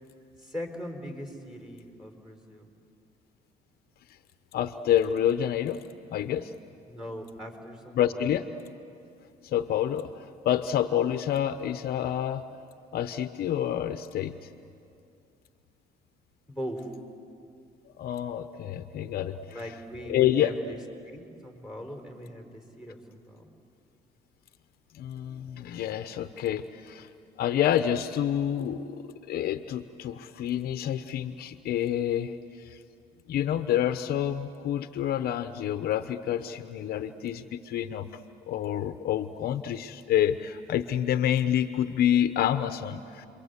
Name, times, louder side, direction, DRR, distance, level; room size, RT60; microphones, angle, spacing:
voice 1, 0.4-2.7 6.9-8.2 16.5-16.9 19.5-20.8 21.0-23.4, equal, 5° right, 2 dB, 4.2 m, -40 dB
voice 2, 4.5-5.8 6.1-6.5 8.0-8.5 9.4-12.4 12.9-14.4 17.9-19.6 20.1-20.5 24.9-27.1 27.4-32.8 33.3-38.1 38.5-43.3, left 10 dB, 65° left, 10 dB, 0.9 m, -28 dB
30.0 x 23.0 x 8.2 m, 2.5 s
cardioid pair, 110°, 17 cm